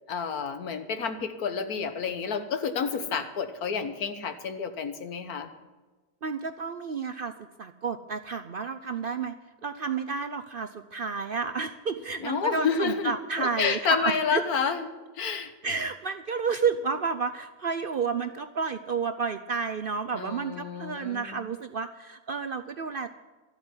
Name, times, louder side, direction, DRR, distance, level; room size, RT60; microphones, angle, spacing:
voice 1, 0.1-5.5 12.2-13.1 13.4-14.9 15.2-15.5 20.1-21.4, left 6 dB, 85° left, 8 dB, 1.7 m, -29 dB
voice 2, 6.2-7.3 7.6-9.3 9.6-14.4 15.6-23.1, right 5 dB, 60° right, 9 dB, 0.6 m, -31 dB
13.0 x 8.0 x 9.6 m, 1.2 s
omnidirectional pair, 1.5 m